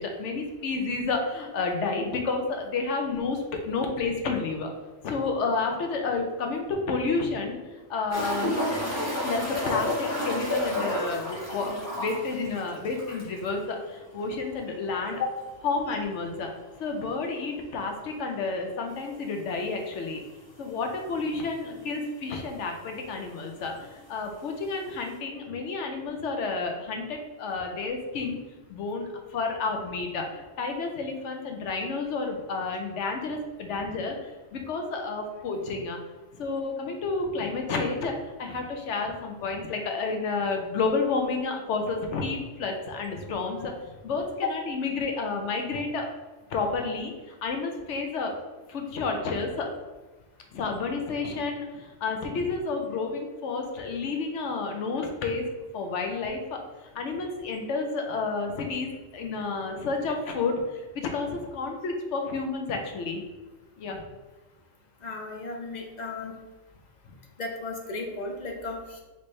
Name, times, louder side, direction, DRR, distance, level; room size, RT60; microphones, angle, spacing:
voice 1, 0.0-4.7 5.0-7.6 7.9-8.5 9.2-15.2 15.6-16.5 16.8-20.2 20.6-28.4 28.7-34.2 34.5-36.0 36.4-46.1 46.5-48.3 48.7-49.7 50.5-55.4 55.7-56.6 56.9-60.5 60.9-63.2 63.8-64.0, left 4 dB, 70° left, 3 dB, 0.9 m, -30 dB
sound 1, 8.1-13.5 13.8-13.9 14.2-14.3 17.1-17.2 18.9-19.0 19.8-19.9 20.1-20.2 21.1-21.2 21.3-22.0 22.9-23.0, left 1 dB, 10° left, 1.3 m, -31 dB
voice 2, 65.0-66.3 67.4-69.0, left 4 dB, 45° left, 1 dB, 0.6 m, -34 dB
4.3 x 3.3 x 3.1 m, 1.2 s
omnidirectional pair, 1.4 m